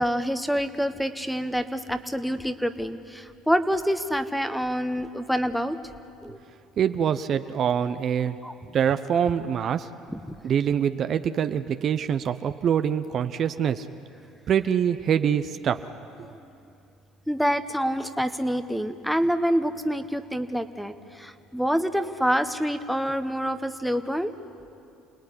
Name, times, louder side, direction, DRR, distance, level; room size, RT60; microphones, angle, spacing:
voice 1, 0.0-5.8 6.2-6.4 8.4-8.5 9.3-9.4 10.1-10.2 16.3-16.5 17.3-24.3, equal, ahead, 10 dB, 1.3 m, -27 dB
voice 2, 6.8-8.4 8.7-9.9 10.4-13.9 14.5-15.8, right 8 dB, 50° right, 10 dB, 0.9 m, -24 dB
28.5 x 19.0 x 10.0 m, 2.6 s
supercardioid pair, 85°, 0 cm